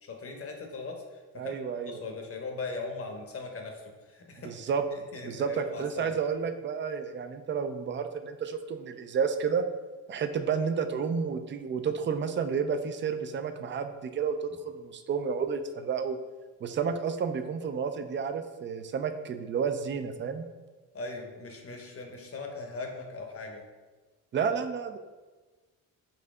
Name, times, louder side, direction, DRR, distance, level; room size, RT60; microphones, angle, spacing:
voice 1, 0.0-1.6 1.9-4.7 4.9-6.1 20.9-23.6, left 3 dB, 40° left, 3 dB, 0.8 m, -39 dB
voice 2, 1.4-1.9 4.4-4.8 5.2-9.6 10.1-16.2 16.6-20.4 24.3-25.0, right 6 dB, 35° right, 8 dB, 0.4 m, -31 dB
4.2 x 2.7 x 3.6 m, 1.3 s
cardioid pair, 75°, 35 cm